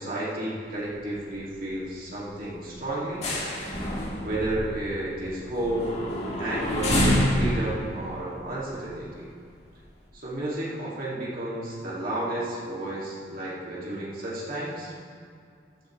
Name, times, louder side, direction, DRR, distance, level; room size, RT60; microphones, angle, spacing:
voice 1, 0.0-3.3 3.6-3.8 4.2-6.0 6.4-9.3 10.1-14.9, right 1 dB, 50° right, -7 dB, 2.4 m, -32 dB
sound 1, 0.7-1.2 1.4-1.6 2.0-2.2 2.6-9.2 9.8-9.9, left 1 dB, 40° left, 2.0 m, -28 dB
14.5 x 11.5 x 3.2 m, 2.2 s
head